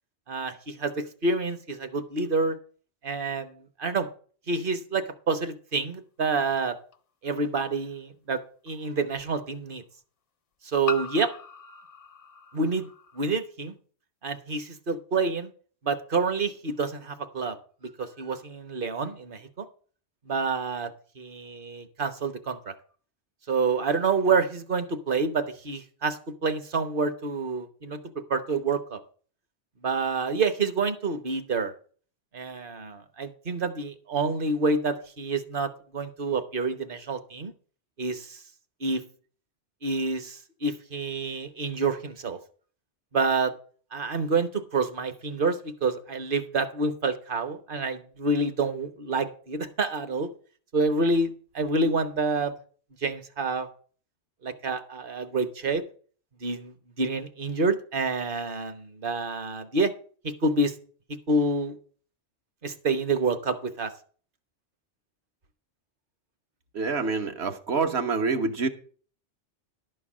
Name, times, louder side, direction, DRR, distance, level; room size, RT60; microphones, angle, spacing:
voice 1, 0.3-2.6 3.0-4.1 4.5-6.8 7.2-8.4 8.6-9.8 10.6-11.3 12.5-12.9 13.1-13.7 14.2-15.5 15.8-17.6 18.0-19.6 20.3-20.9 21.2-22.7 23.5-28.0 28.3-29.0 29.8-31.7 32.3-37.5 38.0-38.4 38.8-39.0 39.8-42.4 43.1-43.5 43.9-50.3 50.7-52.6 53.0-53.7 54.4-55.8 56.4-59.9 60.2-60.7 61.1-61.8 62.6-63.9, right 3 dB, 50° right, 1.2 m, -28 dB
sound 1, 6.9-7.0 8.7-8.8 10.9-13.3, left 4 dB, 50° left, 0.4 m, -39 dB
voice 2, 66.7-68.7, right 4 dB, 65° right, 1.5 m, -26 dB
11.5 x 4.6 x 7.3 m
omnidirectional pair, 1.2 m